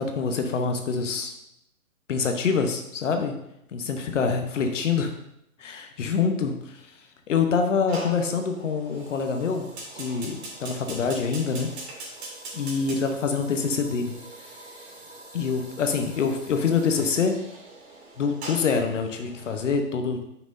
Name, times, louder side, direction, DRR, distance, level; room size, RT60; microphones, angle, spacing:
voice 1, 0.0-1.3 2.1-3.3 3.7-5.1 5.6-6.9 7.3-9.7 9.9-11.7 12.5-14.1 15.3-17.4 18.2-20.2, left 5 dB, 55° left, 5 dB, 0.9 m, -25 dB
Fire, 7.9-19.6, right 2 dB, 45° right, 2.5 m, -42 dB
9.2 x 6.1 x 2.6 m, 0.78 s
hypercardioid pair, 155°, 44 cm